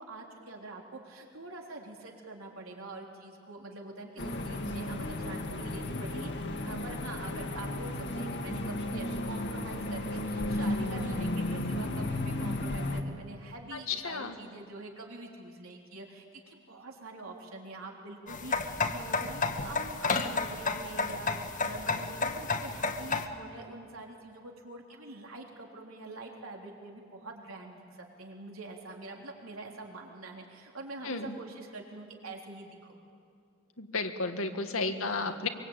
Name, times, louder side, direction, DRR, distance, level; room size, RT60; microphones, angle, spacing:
voice 1, 0.0-6.3 6.6-21.3 21.6-33.0 34.9-35.4, right 2 dB, 85° right, 0 dB, 3.7 m, -45 dB
sound 1, 4.2-13.0, left 1 dB, 55° left, 1.8 m, -34 dB
voice 2, 13.7-14.4 31.0-31.4 33.8-35.5, left 3 dB, 85° left, 6 dB, 1.8 m, -33 dB
sound 2, 18.3-23.3, left 4 dB, 40° left, 1.3 m, -31 dB
23.5 x 23.5 x 9.0 m, 2.3 s
head